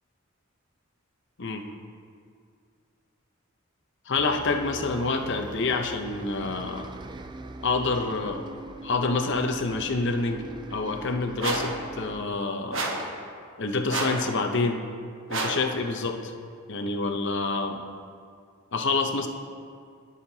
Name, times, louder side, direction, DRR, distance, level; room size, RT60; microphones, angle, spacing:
voice 1, 4.1-6.9 7.6-8.4 8.8-10.4 10.7-12.8 13.6-14.8 15.3-16.3 16.7-17.8 18.7-19.3, left 3 dB, 60° left, 5 dB, 0.8 m, -27 dB
Bus, 4.2-12.3, right 2 dB, 20° right, 0.3 m, -41 dB
sound 1, 11.4-11.8 12.7-13.1 13.9-14.3 15.3-15.7, right 2 dB, 65° right, 1.2 m, -29 dB
18.0 x 6.5 x 2.8 m, 2.2 s
head